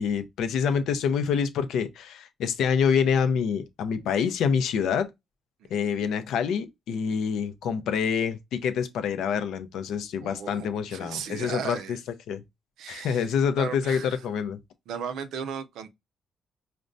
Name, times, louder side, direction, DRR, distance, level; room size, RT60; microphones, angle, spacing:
voice 1, 0.0-5.1 5.7-11.8 12.3-12.4 12.9-14.6, left 7 dB, 80° left, 0.5 m, -26 dB
voice 2, 10.2-12.0 12.8-14.2 14.9-15.9, right 7 dB, 80° right, 0.4 m, -36 dB
5.0 x 2.1 x 2.5 m
cardioid pair, 90°, 0 cm